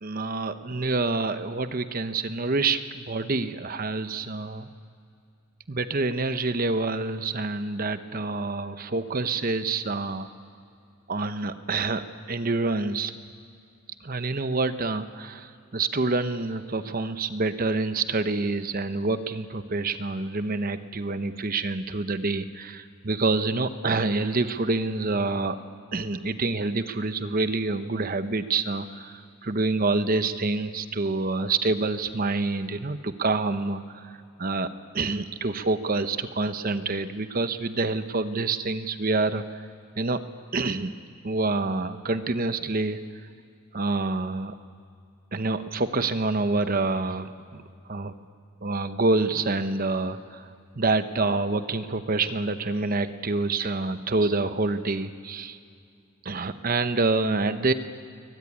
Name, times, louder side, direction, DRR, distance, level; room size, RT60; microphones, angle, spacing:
voice 1, 0.0-4.7 5.7-10.3 11.1-13.1 14.0-25.6 25.9-34.1 34.4-34.7 34.9-39.4 40.0-40.2 40.5-41.0 41.2-43.0 43.7-44.5 45.3-47.6 47.9-48.1 48.6-55.6 56.2-57.7, right 3 dB, 40° right, 10 dB, 0.9 m, -27 dB
22.5 x 20.0 x 9.8 m, 2.4 s
head